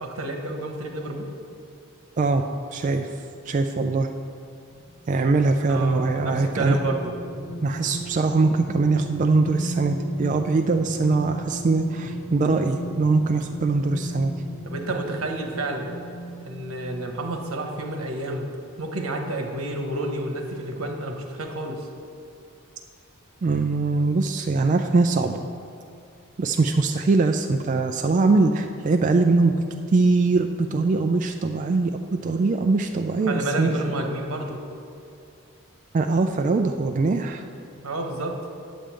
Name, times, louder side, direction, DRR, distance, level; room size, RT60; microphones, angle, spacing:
voice 1, 0.0-1.3 5.7-7.1 14.6-15.9 16.4-18.5 18.8-21.9 33.3-34.6 37.8-38.4, right 2 dB, 85° right, 3 dB, 1.1 m, -30 dB
voice 2, 2.7-3.1 3.5-4.1 5.1-6.8 7.6-14.3 23.4-25.4 26.4-29.5 29.9-33.7 35.9-37.4, right 3 dB, 35° right, 5 dB, 0.3 m, -22 dB
sound 1, 4.5-17.4 17.8-18.0, right 1 dB, 65° left, 1.8 m, -36 dB
8.7 x 5.3 x 7.5 m, 2.4 s
head